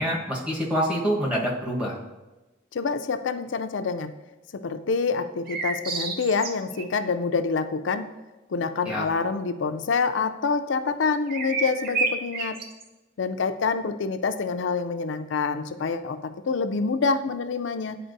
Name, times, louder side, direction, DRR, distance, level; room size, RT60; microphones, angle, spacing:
voice 1, 0.0-2.0 8.9-9.0, equal, 5° right, -4 dB, 1.2 m, -26 dB
voice 2, 2.7-4.1 4.5-8.1 8.5-12.6 13.2-18.0, left 4 dB, 70° left, 10 dB, 0.4 m, -26 dB
sound 1, 5.5-6.8 11.3-12.8, right 4 dB, 50° right, 0.7 m, -29 dB
10.0 x 4.3 x 2.6 m, 1.1 s
head